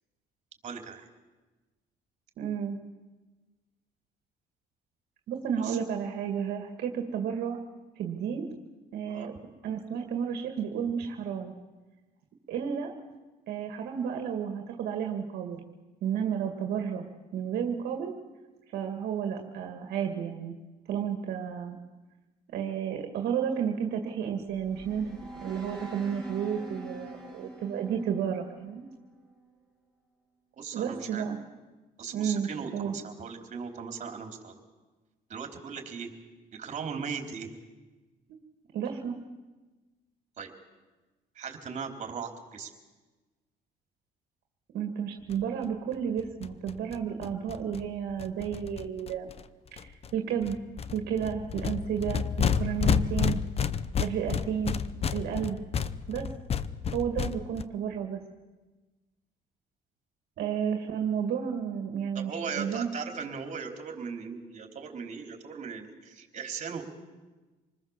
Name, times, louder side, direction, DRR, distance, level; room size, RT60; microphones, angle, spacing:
voice 1, 0.6-1.1 5.6-5.8 9.0-9.3 30.6-31.2 32.0-34.5 35.3-36.1 36.5-37.5 40.4-40.5 41.4-42.7 62.1-66.8, right 6 dB, 45° right, 4 dB, 4.0 m, -38 dB
voice 2, 2.4-2.8 5.3-7.6 8.0-8.5 8.9-9.3 9.6-11.5 12.5-12.9 13.5-15.6 16.0-18.1 18.7-20.6 20.9-21.8 22.5-28.9 30.7-31.4 32.1-32.9 38.7-39.2 44.7-49.3 49.7-50.6 50.9-53.4 54.0-54.8 55.1-55.6 56.1-56.3 56.9-58.2 60.4-62.9, right 8 dB, 70° right, 4 dB, 2.1 m, -32 dB
sound 1, 24.3-29.4, right 2 dB, 5° left, 5.7 m, -44 dB
sound 2, 45.3-45.4 45.6-45.7 45.9-46.0 46.2-49.4 49.8-50.1 50.4-57.6, left 7 dB, 35° left, 0.8 m, -31 dB
26.5 x 20.0 x 7.4 m, 1.2 s
cardioid pair, 110°, 17 cm